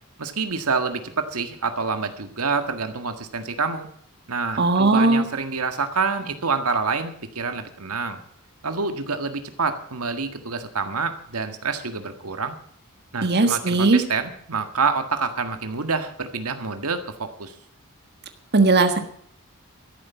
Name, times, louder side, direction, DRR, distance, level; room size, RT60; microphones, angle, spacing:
voice 1, 0.2-3.9 4.3-8.2 8.6-12.6 13.1-17.5, right 4 dB, 90° right, 8 dB, 1.8 m, -27 dB
voice 2, 4.6-5.2 13.2-14.0 18.5-19.0, right 3 dB, 50° right, 7 dB, 1.5 m, -18 dB
13.0 x 11.5 x 7.3 m, 0.63 s
head